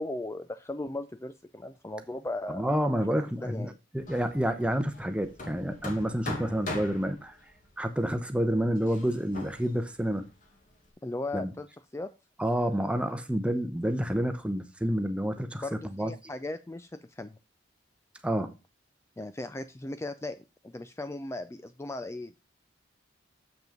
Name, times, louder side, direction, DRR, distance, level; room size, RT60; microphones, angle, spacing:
voice 1, 0.0-3.1 3.4-3.8 11.0-11.7 11.9-12.1 15.6-17.4 19.2-20.4 20.6-22.3, left 2 dB, 15° left, 0.3 m, -37 dB
voice 2, 2.5-7.3 7.8-10.2 11.3-11.5 12.4-15.6 15.9-16.1 18.2-18.5, equal, 5° right, 0.8 m, -29 dB
Hammer, 4.0-10.9, left 1 dB, 40° left, 2.0 m, -42 dB
7.4 x 6.0 x 5.1 m
head